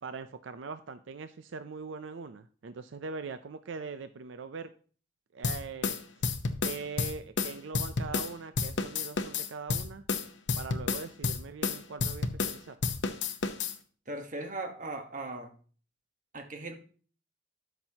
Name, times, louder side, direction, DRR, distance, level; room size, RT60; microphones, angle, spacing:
voice 1, 0.0-4.7 5.3-6.0 6.6-10.0 10.6-12.8, right 4 dB, 80° right, 11 dB, 0.5 m, -41 dB
sound 1, 5.4-8.3 8.6-12.6 12.8-13.8, left 4 dB, 70° left, 0.8 m, -31 dB
voice 2, 14.1-15.5 16.3-16.8, right 2 dB, 40° right, 5 dB, 1.3 m, -38 dB
13.0 x 6.0 x 2.8 m, 0.41 s
head